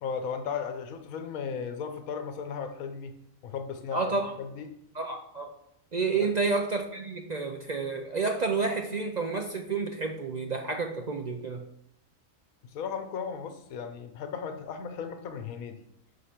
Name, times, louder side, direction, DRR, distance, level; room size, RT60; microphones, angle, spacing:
voice 1, 0.0-4.7 6.1-6.3 12.6-15.8, left 6 dB, 90° left, 7 dB, 1.2 m, -36 dB
voice 2, 3.9-4.3 4.9-5.5 5.9-11.7, right 4 dB, 55° right, 4 dB, 0.4 m, -30 dB
5.7 x 4.9 x 5.8 m, 0.76 s
omnidirectional pair, 1.4 m